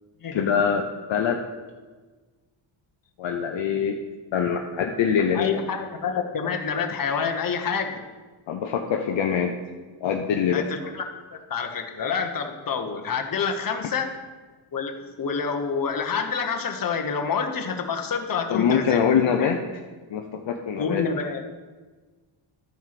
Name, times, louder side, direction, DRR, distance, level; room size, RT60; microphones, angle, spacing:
voice 1, 0.3-1.4 3.2-4.0 4.3-5.6 8.5-9.5 10.0-10.7 18.5-19.6 20.1-21.0, left 7 dB, 60° left, 3 dB, 0.9 m, -24 dB
voice 2, 5.3-8.0 10.5-11.0 11.3-14.1 14.7-19.5 20.8-21.4, left 5 dB, 40° left, 4 dB, 1.3 m, -28 dB
13.0 x 4.6 x 5.8 m, 1.3 s
cardioid pair, 100°, 49 cm